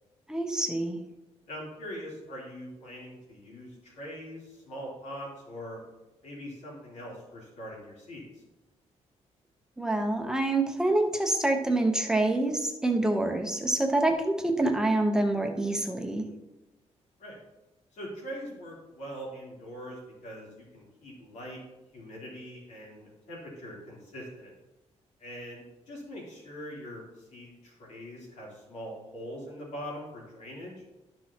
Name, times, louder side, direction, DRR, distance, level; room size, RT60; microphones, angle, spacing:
voice 1, 0.3-1.0 9.8-16.2, right 2 dB, 5° right, 3 dB, 0.7 m, -26 dB
voice 2, 1.5-5.8 6.2-8.4 17.2-17.4 17.9-21.6 21.9-24.5 25.2-30.7, equal, 85° left, -4 dB, 3.1 m, -42 dB
12.5 x 6.1 x 2.8 m, 1.1 s
wide cardioid pair, 180°, 12 cm